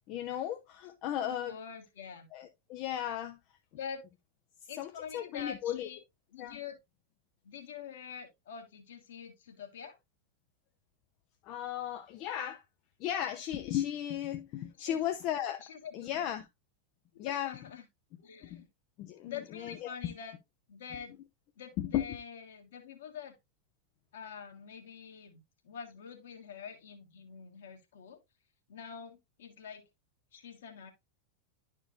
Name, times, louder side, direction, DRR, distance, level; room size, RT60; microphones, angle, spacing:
voice 1, 0.1-1.6 2.3-3.4 4.6-5.9 6.4-6.6 11.4-12.6 13.0-15.7 15.9-16.5 17.2-17.5 18.4-18.6 19.0-19.9 21.8-22.2, left 11 dB, 40° left, 0.6 m, -35 dB
voice 2, 1.2-2.3 3.7-4.0 4.7-6.0 6.3-6.8 7.4-10.0 14.8-15.0 15.6-16.3 17.1-17.9 18.2-18.7 19.2-20.4 20.7-21.2 21.6-23.4 24.1-28.2 28.7-29.9 30.3-30.9, left 7 dB, 60° left, 1.6 m, -46 dB
11.0 x 4.5 x 2.5 m
figure-of-eight pair, 90°, 0 cm